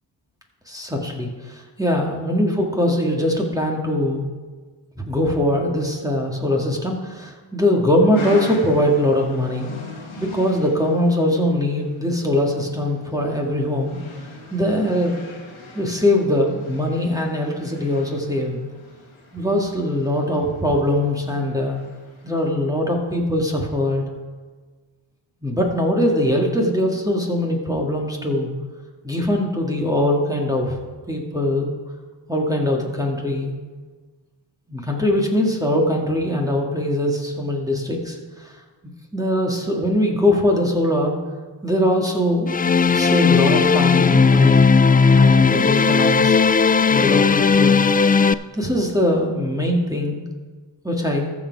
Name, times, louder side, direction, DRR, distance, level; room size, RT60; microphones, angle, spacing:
voice 1, 0.7-4.2 5.0-9.7 10.2-14.0 14.5-15.2 15.7-18.6 19.3-21.8 22.2-24.0 25.4-28.5 29.0-30.8 31.1-31.7 32.3-33.5 34.7-38.5 39.1-41.2 41.6-42.5 42.9-44.7 45.1-46.4 46.9-47.8 48.5-50.2 50.8-51.3, left 1 dB, 10° right, -1 dB, 2.1 m, -21 dB
sound 1, 8.1-22.5, left 3 dB, 85° left, 1.8 m, -40 dB
sound 2, 42.5-48.3, left 5 dB, 20° left, 0.3 m, -16 dB
14.5 x 5.2 x 4.7 m, 1.4 s
cardioid pair, 45°, 47 cm